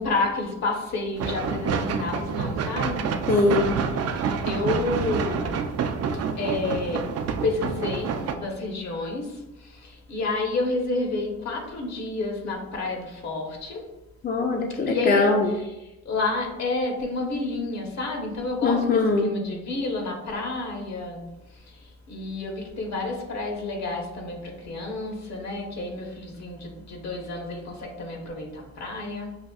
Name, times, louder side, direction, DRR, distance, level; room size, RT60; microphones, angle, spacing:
voice 1, 0.0-3.1 4.1-5.7 6.1-7.1 7.4-13.8 14.9-15.3 16.0-29.4, left 3 dB, 65° left, 1 dB, 1.1 m, -30 dB
sound 1, 1.2-8.3, right 6 dB, 55° right, 0.4 m, -28 dB
voice 2, 3.3-3.8 14.2-15.5 18.6-19.3, left 3 dB, 30° left, 2 dB, 0.5 m, -22 dB
6.3 x 2.6 x 2.4 m, 0.97 s
cardioid pair, 90°, 30 cm